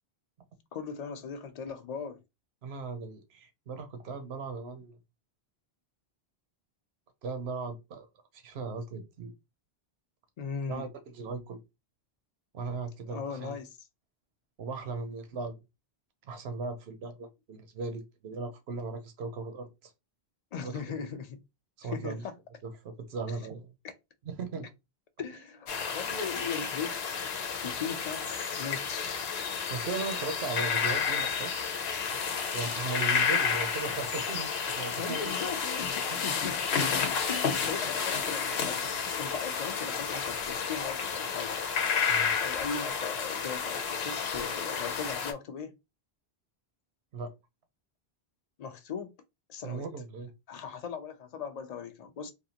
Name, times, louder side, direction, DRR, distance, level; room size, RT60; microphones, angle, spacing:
voice 1, 0.7-2.2 10.4-10.9 13.1-13.8 20.5-21.4 21.8-22.3 23.8-23.9 25.2-27.0 27.5-29.3 35.0-41.6 42.4-45.7 48.6-49.1 49.5-49.9 50.5-52.3, left 6 dB, 50° left, 0.5 m, -39 dB
voice 2, 2.6-4.9 7.2-8.1 8.3-9.3 10.7-10.9 11.1-11.6 12.5-13.6 14.6-15.6 16.2-19.9 20.6-21.0 21.8-22.2 22.6-23.7 24.2-24.7 29.7-31.5 32.5-35.3 42.1-42.3 47.1-47.3 49.6-50.3, right 4 dB, 90° right, 1.0 m, -37 dB
sound 1, 25.7-45.3, left 6 dB, 85° left, 0.9 m, -31 dB
3.4 x 2.5 x 2.7 m
omnidirectional pair, 1.0 m